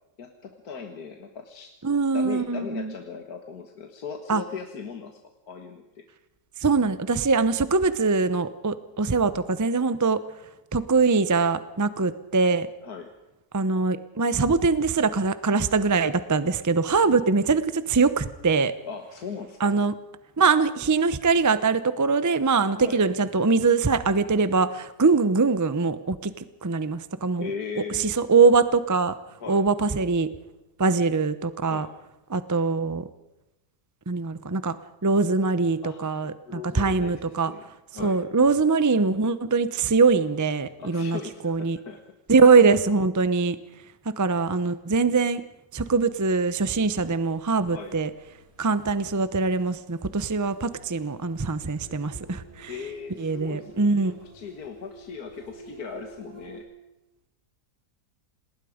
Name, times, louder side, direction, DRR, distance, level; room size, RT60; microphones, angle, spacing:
voice 1, 0.2-1.7 2.1-5.2 5.5-6.0 12.8-13.1 18.9-19.7 22.8-23.1 27.4-28.1 29.4-29.6 31.7-31.9 35.8-37.7 37.9-38.2 40.8-42.0 47.7-47.9 52.7-56.7, left 6 dB, 60° left, 5 dB, 1.9 m, -38 dB
voice 2, 1.8-2.9 4.3-4.4 6.6-10.2 10.7-12.7 13.5-18.7 19.6-19.9 20.4-26.3 26.6-27.5 27.9-29.1 29.5-30.3 30.8-31.9 32.3-33.0 34.1-34.7 35.0-37.5 38.0-41.2 41.4-41.8 42.3-43.6 44.2-45.4 45.7-48.1 48.6-52.7 53.2-54.2, right 4 dB, 25° right, 13 dB, 0.4 m, -22 dB
sound 1, 45.9-56.6, right 2 dB, 40° right, 7.8 m, -50 dB
27.5 x 20.0 x 5.1 m, 0.95 s
omnidirectional pair, 1.8 m